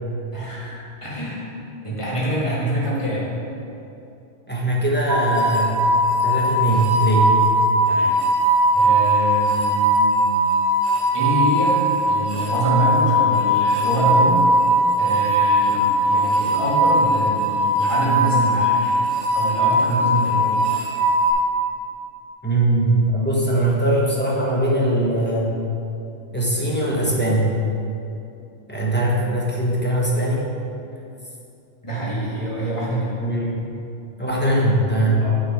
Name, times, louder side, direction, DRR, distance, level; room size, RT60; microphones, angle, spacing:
voice 1, 0.3-1.4 1.8-3.3 7.9-8.1 8.7-10.2 11.1-14.5 15.0-19.0 19.3-20.6 31.8-33.1 35.2-35.3, right 1 dB, 25° left, -8 dB, 2.1 m, -25 dB
voice 2, 4.5-5.7 6.2-7.4 22.4-25.6 26.3-27.5 28.7-30.4 33.2-33.8 34.2-35.3, right 1 dB, 10° left, -5 dB, 1.1 m, -21 dB
sound 1, 5.1-21.3, right 1 dB, 35° right, 0.9 m, -19 dB
8.0 x 5.4 x 4.7 m, 2.7 s
omnidirectional pair, 1.3 m